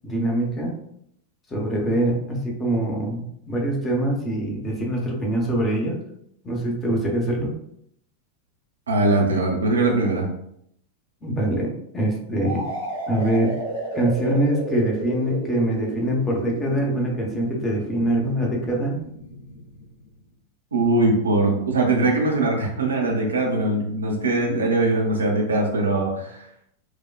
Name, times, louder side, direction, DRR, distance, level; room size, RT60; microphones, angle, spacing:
voice 1, 0.0-0.7 1.5-6.0 6.4-7.5 11.2-12.6 13.1-13.5 13.9-19.0, right 1 dB, 20° left, 0 dB, 0.9 m, -24 dB
voice 2, 8.9-10.3 20.7-26.5, right 2 dB, 75° right, 1 dB, 0.8 m, -21 dB
sound 1, 12.4-20.1, right 1 dB, 70° left, 1.3 m, -33 dB
4.8 x 2.3 x 2.4 m, 0.73 s
figure-of-eight pair, 90°, 0 cm